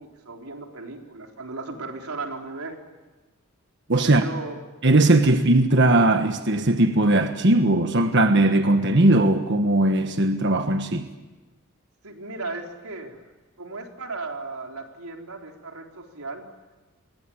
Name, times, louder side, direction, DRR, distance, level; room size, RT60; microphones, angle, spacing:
voice 1, 0.0-2.8 4.0-4.6 12.0-13.2 13.6-16.4, right 3 dB, 85° right, 3.9 m, -36 dB
voice 2, 3.9-4.3 4.8-11.1, right 2 dB, 55° right, 1.4 m, -19 dB
29.5 x 23.0 x 8.7 m
head